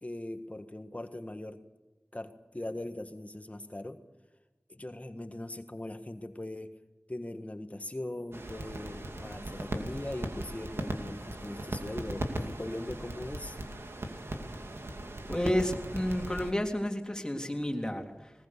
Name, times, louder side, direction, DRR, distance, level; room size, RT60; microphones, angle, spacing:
voice 1, 0.0-1.6 2.1-4.0 4.7-6.8 7.1-13.6, left 1 dB, 35° left, 8 dB, 1.6 m, -40 dB
sound 1, 8.3-16.5, right 1 dB, 85° right, 2.5 m, -38 dB
voice 2, 15.3-18.3, left 1 dB, 15° left, 3 dB, 3.5 m, -31 dB
20.5 x 19.5 x 6.8 m, 1.1 s
wide cardioid pair, 45°, 4 cm